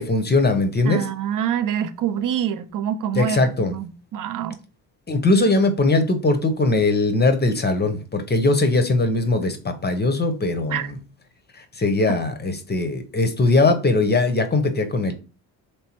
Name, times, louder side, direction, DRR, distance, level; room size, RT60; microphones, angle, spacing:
voice 1, 0.0-1.0 3.1-3.7 5.1-11.0 11.8-15.1, left 2 dB, 20° left, 0.7 m, -20 dB
voice 2, 0.9-4.6 10.7-10.9, right 9 dB, 40° right, 0.5 m, -26 dB
3.2 x 3.0 x 2.9 m
hypercardioid pair, 50°, 50 cm